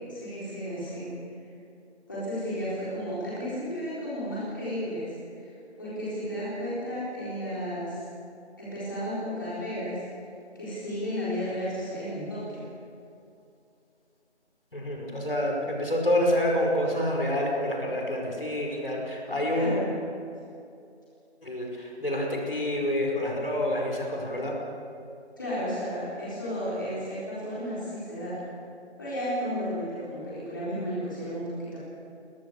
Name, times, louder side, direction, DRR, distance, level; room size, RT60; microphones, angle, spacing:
voice 1, 0.1-1.2 2.1-5.1 5.4-8.0 8.6-10.0 10.5-12.7 19.5-19.9 25.4-28.4 29.0-31.8, equal, 20° left, -9 dB, 4.1 m, -33 dB
voice 2, 14.7-19.7 21.4-24.5, left 1 dB, 55° left, 0 dB, 5.4 m, -27 dB
22.0 x 20.0 x 6.8 m, 2.5 s
figure-of-eight pair, 180°, 34 cm